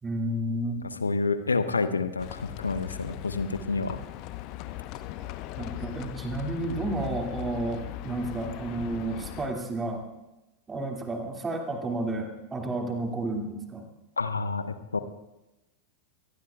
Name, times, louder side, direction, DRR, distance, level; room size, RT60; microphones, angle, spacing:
voice 1, 0.0-0.9 5.2-5.3 5.6-10.1 10.7-13.8, right 2 dB, 15° right, 2 dB, 2.2 m, -31 dB
voice 2, 1.0-4.0 14.2-15.0, left 4 dB, 75° left, 11 dB, 0.8 m, -28 dB
Livestock farm animals working animals, 2.2-9.5, left 15 dB, 40° left, 0.8 m, -39 dB
24.5 x 18.5 x 2.3 m, 0.97 s
figure-of-eight pair, 90°, 0 cm